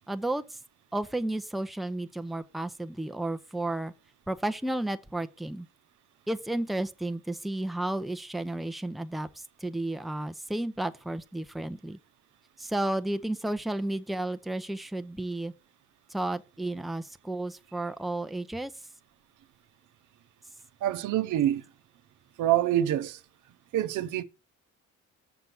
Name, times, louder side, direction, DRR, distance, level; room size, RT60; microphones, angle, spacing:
voice 1, 0.1-0.6 0.9-3.9 4.3-5.7 6.3-12.0 12.6-15.5 16.1-18.7, right 1 dB, ahead, 0.6 m, -32 dB
voice 2, 20.8-21.6 22.4-23.2 23.7-24.2, right 12 dB, 80° right, 0.8 m, -26 dB
7.0 x 5.2 x 5.9 m
cardioid pair, 90°, 30 cm